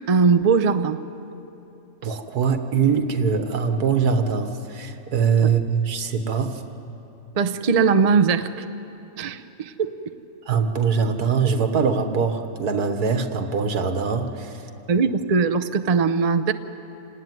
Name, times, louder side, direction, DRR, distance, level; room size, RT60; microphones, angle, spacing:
voice 1, 0.1-1.0 5.4-5.5 7.4-8.7 9.2-10.0 14.9-16.5, right 5 dB, 40° right, 9 dB, 0.5 m, -20 dB
voice 2, 2.0-6.6 10.5-14.5, right 6 dB, 80° right, 7 dB, 1.8 m, -22 dB
27.0 x 18.5 x 9.4 m, 2.9 s
omnidirectional pair, 1.6 m